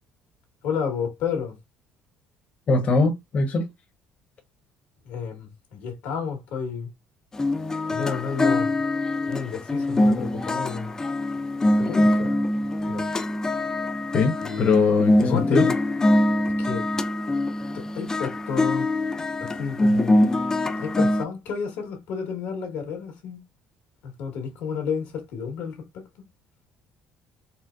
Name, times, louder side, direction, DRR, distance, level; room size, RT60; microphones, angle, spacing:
voice 1, 0.6-1.6 5.0-6.9 7.9-8.8 9.3-10.9 11.6-12.3 12.8-13.1 14.4-14.8 15.3-15.7 16.6-17.0 17.7-18.9 19.4-20.2 20.8-23.4 24.0-26.0, left 6 dB, 80° left, 1.4 m, -31 dB
voice 2, 2.7-3.7 14.1-15.7, left 4 dB, 45° left, 0.9 m, -21 dB
sound 1, 7.3-21.2, left 1 dB, 20° left, 0.4 m, -23 dB
4.3 x 2.1 x 2.4 m
supercardioid pair, 95°, 3 cm